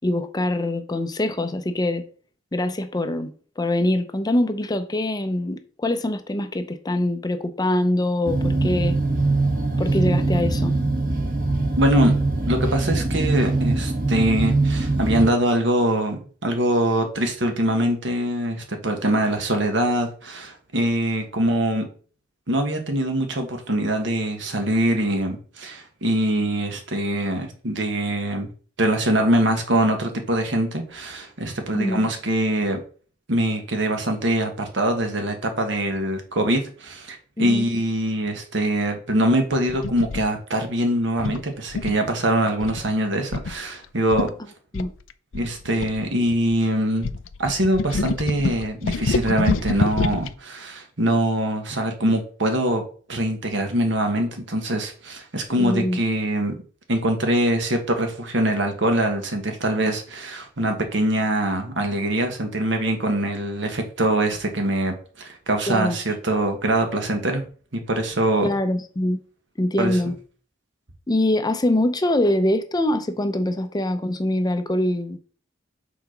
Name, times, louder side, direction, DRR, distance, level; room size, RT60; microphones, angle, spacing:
voice 1, 0.0-2.0 2.5-9.0 9.8-10.8 31.7-32.0 37.4-37.7 44.7-44.9 55.6-56.0 65.7-66.0 68.4-69.2 69.6-70.2 71.1-75.2, left 1 dB, 20° left, 0.6 m, -24 dB
sound 1, 8.2-15.3, right 2 dB, 50° right, 1.5 m, -22 dB
voice 2, 11.8-12.1 12.5-21.9 22.5-28.5 28.8-32.8 33.3-44.3 45.3-47.1 47.4-52.8 53.1-56.5 56.9-67.4 67.7-68.5 69.8-69.9, right 1 dB, 70° right, 1.5 m, -23 dB
sound 2, 39.7-40.2 41.2-42.1 42.6-42.9 43.3-43.5 43.8-43.9 44.1-44.3 44.7-46.6 47.0-50.3, left 4 dB, 90° left, 0.5 m, -27 dB
5.9 x 4.1 x 5.9 m
head